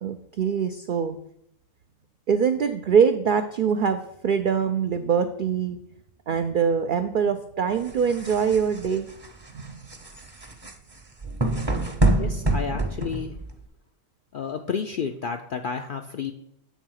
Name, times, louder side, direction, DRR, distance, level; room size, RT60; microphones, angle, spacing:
voice 1, 0.0-1.2 2.3-5.8 6.3-9.1 9.5-9.8, right 6 dB, 75° right, 8 dB, 0.4 m, -23 dB
sound 1, 7.8-13.7, right 2 dB, 25° right, 0.6 m, -27 dB
voice 2, 12.2-13.4 14.3-16.3, left 6 dB, 65° left, 5 dB, 0.5 m, -31 dB
8.1 x 3.8 x 6.3 m, 0.74 s
omnidirectional pair, 1.4 m